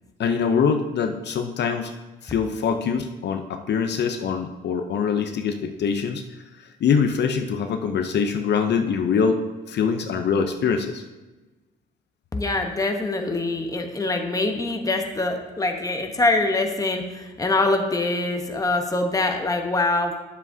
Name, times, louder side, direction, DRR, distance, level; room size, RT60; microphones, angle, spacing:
voice 1, 0.2-1.9 2.2-6.2 6.8-11.0, left 6 dB, 60° left, 5 dB, 0.6 m, -23 dB
voice 2, 12.3-20.2, left 2 dB, 15° left, 4 dB, 1.0 m, -24 dB
10.5 x 7.3 x 2.7 m, 1.1 s
cardioid pair, 90°, 20 cm